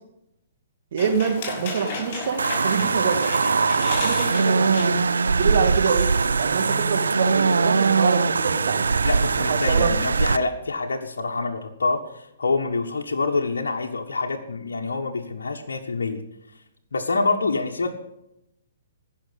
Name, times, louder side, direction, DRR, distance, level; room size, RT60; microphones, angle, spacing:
voice 1, 0.9-3.4 3.8-5.0 5.3-8.9 9.4-9.9, right 6 dB, 55° right, 5 dB, 2.2 m, -26 dB
sound 1, 1.0-5.2 5.6-5.7 5.9-6.8, left 3 dB, 45° left, 6.2 m, -35 dB
sound 2, 2.4-10.4, right 4 dB, 80° right, 0.6 m, -21 dB
voice 2, 9.0-16.2 16.9-18.0, left 3 dB, 75° left, 1 dB, 1.4 m, -26 dB
15.5 x 6.4 x 8.2 m, 0.83 s
hypercardioid pair, 130°, 0 cm